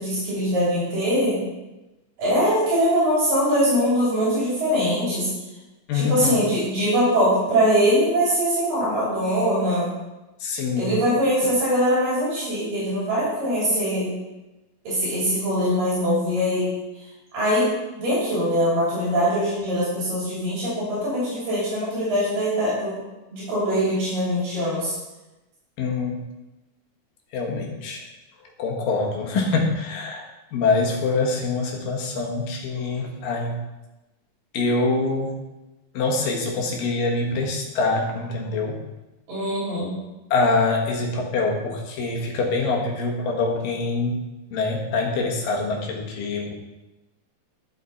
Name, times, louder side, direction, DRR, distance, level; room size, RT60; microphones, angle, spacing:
voice 1, 0.0-1.4 2.2-5.3 5.9-9.9 10.8-14.1 14.8-16.7 17.3-17.7 18.0-23.0 23.3-24.9 39.3-39.9, equal, 80° right, -9 dB, 5.0 m, -22 dB
voice 2, 5.9-6.4 10.4-10.9 25.8-26.2 27.3-28.0 28.6-30.2 30.5-33.6 34.5-35.4 35.9-38.8 40.3-44.2 44.5-46.5, left 3 dB, 80° left, 0 dB, 3.0 m, -24 dB
12.5 x 6.1 x 4.1 m, 1.0 s
omnidirectional pair, 3.9 m